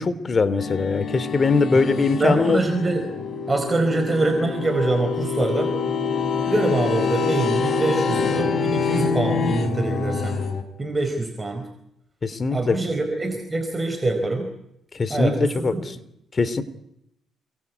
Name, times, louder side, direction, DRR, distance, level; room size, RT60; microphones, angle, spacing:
voice 1, 0.0-2.6 12.2-12.8 14.9-15.9 16.3-16.6, left 4 dB, 35° left, 14 dB, 3.0 m, -21 dB
sound 1, 0.6-10.6, left 5 dB, 50° left, 5.8 m, -26 dB
voice 2, 1.9-3.0 3.5-5.7 6.5-10.4 10.8-11.7 12.5-14.5 15.1-15.8, right 2 dB, 20° right, 6 dB, 4.4 m, -24 dB
29.0 x 22.5 x 8.3 m, 0.79 s
cardioid pair, 90°, 0 cm